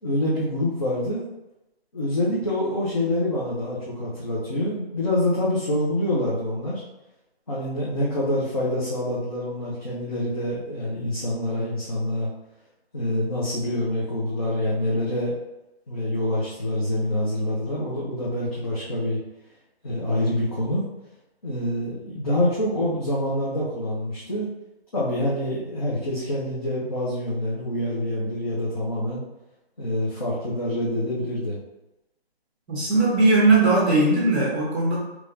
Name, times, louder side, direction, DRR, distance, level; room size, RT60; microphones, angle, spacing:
voice 1, 0.0-1.2 1.9-6.8 7.5-12.3 12.9-15.3 15.9-19.2 19.8-20.8 21.4-24.5 24.9-29.2 29.8-31.6, left 1 dB, 35° left, -8 dB, 0.7 m, -26 dB
voice 2, 32.7-35.0, right 2 dB, 15° right, -6 dB, 1.0 m, -19 dB
3.5 x 3.0 x 2.6 m, 0.94 s
hypercardioid pair, 165°, 32 cm